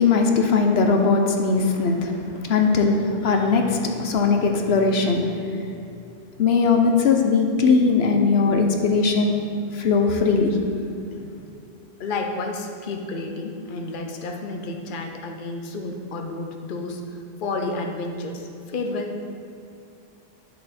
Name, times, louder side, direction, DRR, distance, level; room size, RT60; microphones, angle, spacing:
voice 1, 0.0-5.6 6.4-9.5 9.7-10.6, left 4 dB, 85° left, 3 dB, 1.1 m, -20 dB
voice 2, 12.0-17.0 17.4-19.2, left 3 dB, 55° left, 3 dB, 0.9 m, -30 dB
10.5 x 6.4 x 4.3 m, 2.6 s
omnidirectional pair, 1.0 m